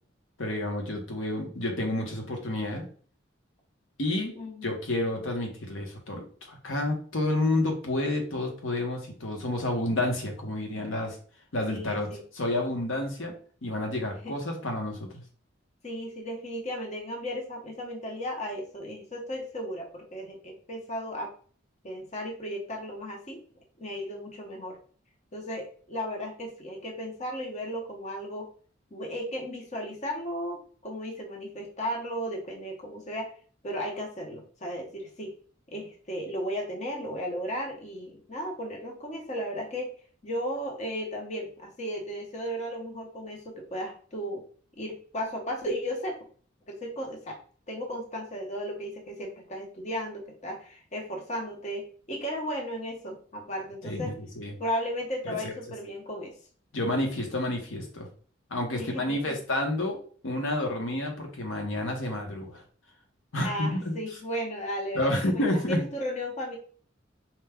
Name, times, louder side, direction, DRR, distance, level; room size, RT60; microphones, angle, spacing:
voice 1, 0.4-2.8 4.0-4.4 4.6-11.2 11.5-13.3 13.6-15.1 53.8-54.5 55.4-55.5 56.7-58.1 58.5-60.0 60.2-62.6 63.3-64.0 64.9-65.8, left 1 dB, 85° left, 3 dB, 1.0 m, -30 dB
voice 2, 4.4-4.7 11.7-12.2 14.2-14.3 15.8-21.3 21.8-23.4 23.8-24.8 25.3-28.5 28.9-33.3 33.6-35.3 35.7-39.9 40.2-44.4 44.8-46.2 46.7-47.4 47.7-54.2 54.6-56.3 58.7-59.4 63.4-66.6, equal, 35° left, 1 dB, 0.8 m, -35 dB
4.4 x 2.2 x 3.5 m, 0.43 s
head